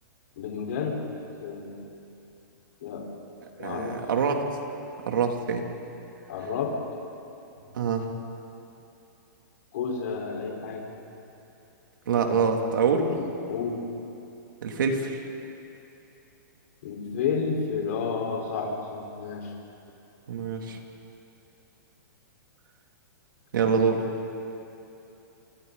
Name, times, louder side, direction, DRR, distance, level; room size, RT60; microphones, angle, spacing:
voice 1, 0.4-1.0 1.4-1.8 2.8-3.1 3.6-4.0 6.3-6.8 9.7-10.8 13.1-13.8 16.8-19.5, left 5 dB, 50° left, 0 dB, 4.8 m, -31 dB
voice 2, 3.6-4.5 5.1-5.6 7.7-8.1 12.1-13.1 14.6-15.2 20.3-20.8 23.5-24.0, right 5 dB, 75° right, 2 dB, 3.2 m, -25 dB
29.0 x 27.5 x 4.2 m, 2.9 s
hypercardioid pair, 165°, 11 cm